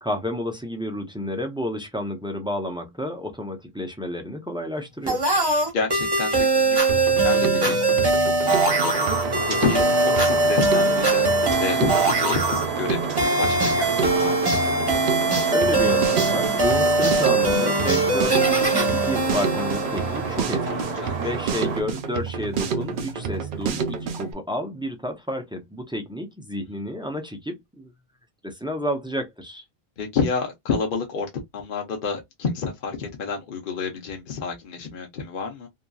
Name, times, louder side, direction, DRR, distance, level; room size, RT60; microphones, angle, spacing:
voice 1, 0.0-5.2 15.5-27.9 28.4-29.6, equal, 5° right, 0.4 m, -30 dB
sound 1, 5.1-20.6, right 2 dB, 25° right, 0.9 m, -22 dB
voice 2, 5.7-8.1 8.4-8.9 9.5-11.3 11.6-14.5 20.7-21.3 30.0-31.3 31.5-35.7, left 5 dB, 60° left, 0.8 m, -29 dB
Drum kit, 6.9-24.3, right 6 dB, 60° right, 0.7 m, -30 dB
sound 2, 8.6-21.8, right 4 dB, 80° right, 1.2 m, -31 dB
2.9 x 2.5 x 2.3 m
omnidirectional pair, 1.1 m